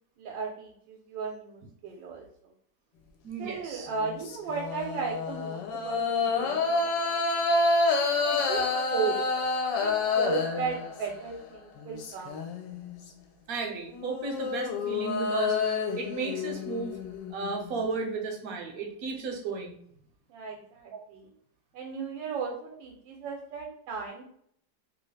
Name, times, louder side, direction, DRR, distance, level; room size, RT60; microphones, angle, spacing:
voice 1, 0.2-2.3 3.4-6.6 8.3-8.6 8.9-9.2 9.8-12.4 20.3-21.3 21.7-24.2, right 5 dB, 85° right, 1 dB, 1.3 m, -35 dB
voice 2, 3.2-3.9 13.5-17.0 17.3-19.7 20.9-21.0, right 4 dB, 65° right, 3 dB, 1.0 m, -34 dB
sound 1, 3.9-11.3 11.8-12.9 13.9-17.8, left 3 dB, 75° left, 1.2 m, -29 dB
3.0 x 2.7 x 3.1 m, 0.67 s
omnidirectional pair, 2.0 m